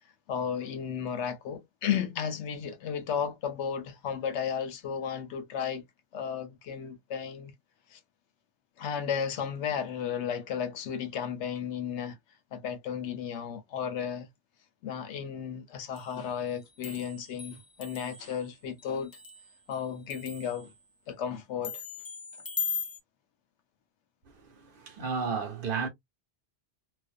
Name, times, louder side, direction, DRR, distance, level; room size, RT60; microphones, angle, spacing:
voice 1, 0.3-5.8 6.1-7.5 7.9-8.0 8.8-12.2 12.5-14.3 14.8-19.2 19.7-20.7 21.1-21.8, left 8 dB, 85° left, 0.9 m, -34 dB
sound 1, 15.9-16.2 16.5-19.8 20.1-20.8 21.6-23.0, left 6 dB, 30° left, 0.4 m, -39 dB
voice 2, 24.4-25.9, right 5 dB, 55° right, 0.8 m, -33 dB
2.5 x 2.1 x 2.4 m
omnidirectional pair, 1.2 m